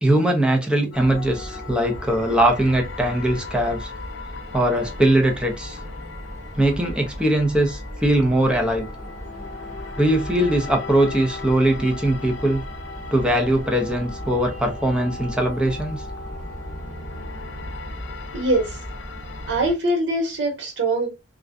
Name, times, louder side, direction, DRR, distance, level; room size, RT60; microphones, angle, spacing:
voice 1, 0.0-3.9 4.5-5.8 6.6-8.9 10.0-12.6 13.1-16.0, right 1 dB, 5° right, 0.5 m, -21 dB
sound 1, 0.9-19.7, left 4 dB, 75° left, 0.4 m, -39 dB
sound 2, 0.9-19.7, equal, 40° right, 0.9 m, -37 dB
voice 2, 18.3-18.8 19.5-21.1, right 1 dB, 80° right, 1.1 m, -22 dB
2.4 x 2.1 x 2.5 m
head